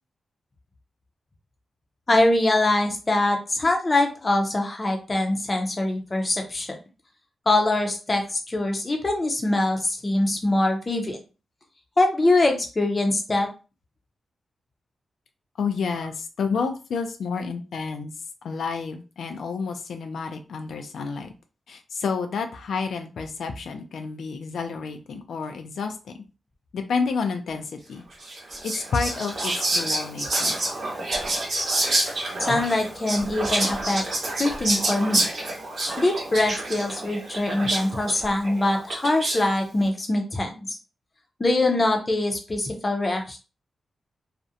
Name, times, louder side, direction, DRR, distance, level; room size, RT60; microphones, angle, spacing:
voice 1, 2.1-6.7 7.5-11.2 12.0-13.5 32.4-34.0 34.4-35.2 36.0-40.7 41.4-43.4, left 2 dB, 25° left, 3 dB, 0.5 m, -23 dB
voice 2, 15.6-18.1 18.4-21.3 21.7-26.0 26.7-28.0 28.6-30.6, left 5 dB, 80° left, 6 dB, 0.3 m, -30 dB
Whispering, 28.2-39.5, right 1 dB, 50° right, 0.8 m, -28 dB
2.4 x 2.0 x 2.6 m, 0.32 s
wide cardioid pair, 165°, 0 cm